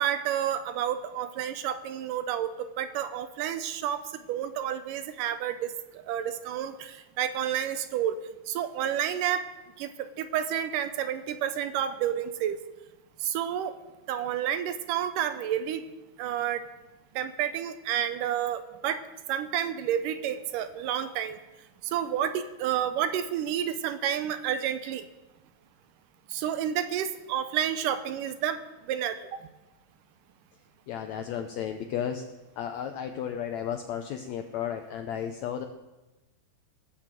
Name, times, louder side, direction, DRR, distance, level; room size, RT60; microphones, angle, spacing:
voice 1, 0.0-8.2 8.5-9.5 9.8-12.6 13.2-13.8 14.1-15.8 16.2-16.7 17.2-19.0 19.3-21.4 21.8-25.1 26.3-28.6 28.9-29.4, right 10 dB, 80° right, 11 dB, 2.1 m, -30 dB
voice 2, 30.9-32.2 32.6-35.7, left 9 dB, 80° left, 6 dB, 1.6 m, -33 dB
18.0 x 6.6 x 7.5 m, 1.1 s
omnidirectional pair, 4.0 m